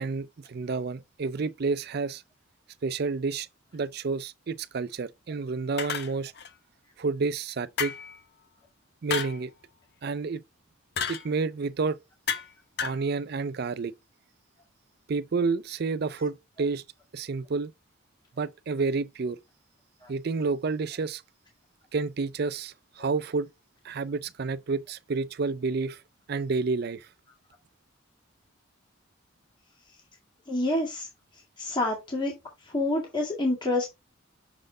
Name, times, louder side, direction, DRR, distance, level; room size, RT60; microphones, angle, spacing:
voice 1, 0.0-2.2 2.8-3.5 3.7-6.3 7.0-7.9 9.0-9.5 10.0-10.4 11.1-12.0 12.8-13.9 15.1-16.8 17.1-17.7 18.4-19.4 20.1-21.2 21.9-23.5 23.8-26.0 26.3-27.1, right 4 dB, 50° right, 0.4 m, -30 dB
sound 1, 5.8-6.5 7.8-8.2 9.1-9.4 11.0-11.3 12.3-12.5 12.8-13.0, left 7 dB, 55° left, 0.8 m, -31 dB
voice 2, 30.5-31.1 31.6-32.3 32.7-33.9, left 2 dB, 25° left, 1.9 m, -27 dB
6.4 x 4.3 x 3.7 m
head